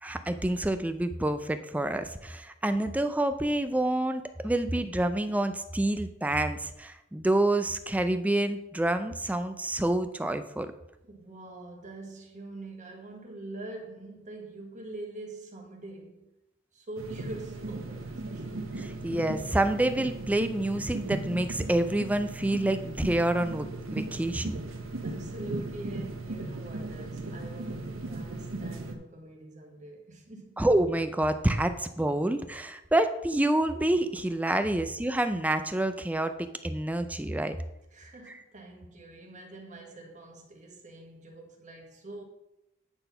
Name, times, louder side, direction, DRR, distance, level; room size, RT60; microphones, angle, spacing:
voice 1, 0.0-10.7 18.8-24.6 30.6-37.6, right 1 dB, 5° right, 0.4 m, -28 dB
voice 2, 11.1-16.3 16.7-18.5 25.0-30.6 34.6-34.8 37.9-42.2, right 2 dB, 40° right, 1.4 m, -44 dB
sound 1, 17.0-29.0, right 2 dB, 80° right, 1.0 m, -37 dB
8.8 x 4.1 x 5.5 m
head